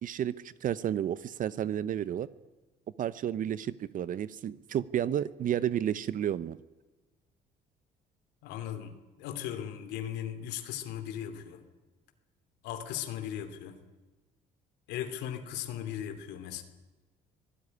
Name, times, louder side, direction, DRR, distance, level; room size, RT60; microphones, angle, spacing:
voice 1, 0.0-2.3 3.0-6.6, right 10 dB, 55° right, 17 dB, 0.8 m, -31 dB
voice 2, 8.4-11.6 12.6-13.8 14.9-16.6, left 10 dB, 90° left, 8 dB, 2.8 m, -37 dB
24.5 x 17.5 x 9.8 m, 1.2 s
cardioid pair, 110°, 17 cm